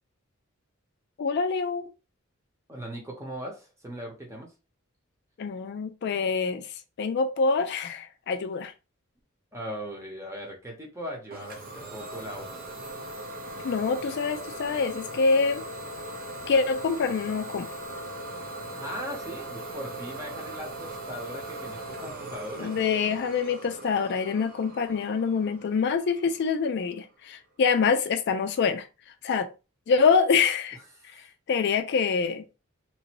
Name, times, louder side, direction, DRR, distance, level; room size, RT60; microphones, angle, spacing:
voice 1, 1.2-1.8 5.4-6.7 7.0-8.7 13.6-15.6 16.5-17.7 22.6-28.9 29.2-29.5 29.9-30.8 31.5-32.4, left 5 dB, 55° left, 0.4 m, -25 dB
voice 2, 2.7-4.5 9.5-12.6 18.7-22.7 31.0-31.3, equal, 15° right, 0.9 m, -39 dB
Idling / Domestic sounds home sounds, 11.3-26.8, right 1 dB, 45° right, 0.9 m, -39 dB
3.0 x 2.6 x 2.9 m
head